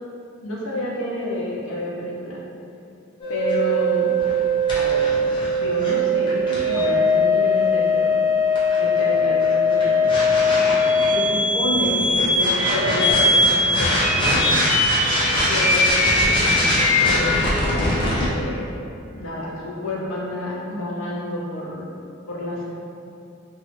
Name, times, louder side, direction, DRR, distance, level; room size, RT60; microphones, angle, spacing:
voice 1, 0.4-2.4 3.3-4.1 4.7-5.2 5.6-8.2 8.8-10.1 11.1-14.7 15.3-17.4 18.2-18.7 19.2-21.9 22.3-22.7, left 1 dB, 70° left, -5 dB, 0.6 m, -29 dB
sound 1, 3.2-18.3, left 1 dB, 25° left, 0.5 m, -19 dB
2.9 x 2.4 x 2.8 m, 2.7 s
head